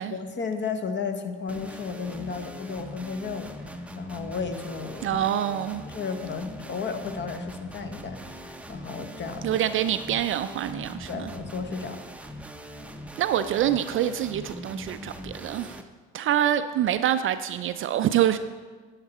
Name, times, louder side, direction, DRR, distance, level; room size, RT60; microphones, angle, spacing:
voice 1, 0.1-5.2 5.9-9.6 11.1-12.0, left 5 dB, 35° left, 1.1 m, -33 dB
sound 1, 1.5-15.8, equal, 5° right, 0.7 m, -41 dB
voice 2, 5.0-5.8 9.4-11.3 13.2-15.8 16.1-18.4, right 11 dB, 40° right, 0.4 m, -26 dB
10.5 x 5.9 x 4.2 m
hypercardioid pair, 65°, 33 cm